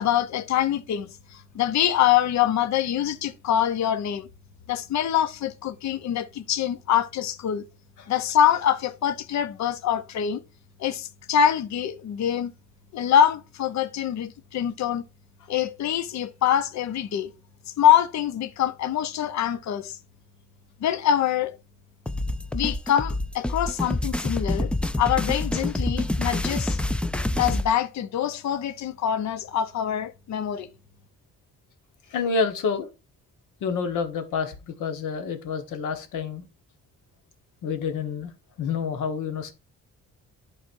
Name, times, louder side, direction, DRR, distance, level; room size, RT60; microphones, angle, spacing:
voice 1, 0.0-4.3 4.7-7.6 8.1-10.4 10.8-12.5 12.9-15.0 15.5-17.3 17.8-20.0 20.8-21.5 22.5-24.7 25.0-26.8 27.4-30.7, left 10 dB, 65° left, 0.8 m, -24 dB
sound 1, 22.1-27.7, left 1 dB, 5° left, 0.4 m, -27 dB
voice 2, 32.1-32.9 33.6-36.4 37.6-38.3 38.6-39.5, left 5 dB, 85° left, 1.3 m, -28 dB
11.0 x 4.1 x 2.6 m
cardioid pair, 90°, 30 cm